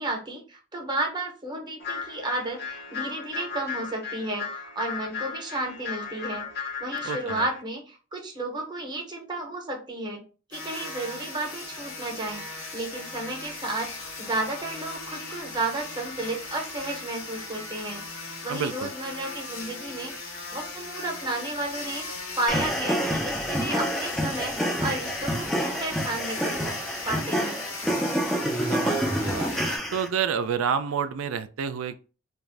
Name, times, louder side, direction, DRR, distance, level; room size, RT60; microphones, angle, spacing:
voice 1, 0.0-6.5 6.8-10.2 10.5-12.4 12.7-18.0 18.4-20.1 20.5-22.1 22.4-26.8 27.0-27.6, right 2 dB, 20° right, 0.7 m, -32 dB
sound 1, 1.8-7.6, left 6 dB, 50° left, 0.6 m, -35 dB
voice 2, 7.0-7.5 18.5-18.9 28.7-29.5 29.9-32.0, right 7 dB, 75° right, 0.3 m, -29 dB
sound 2, 10.5-29.8, left 3 dB, 85° left, 0.9 m, -38 dB
sound 3, 22.5-30.1, equal, ahead, 0.3 m, -28 dB
2.5 x 2.2 x 3.2 m
head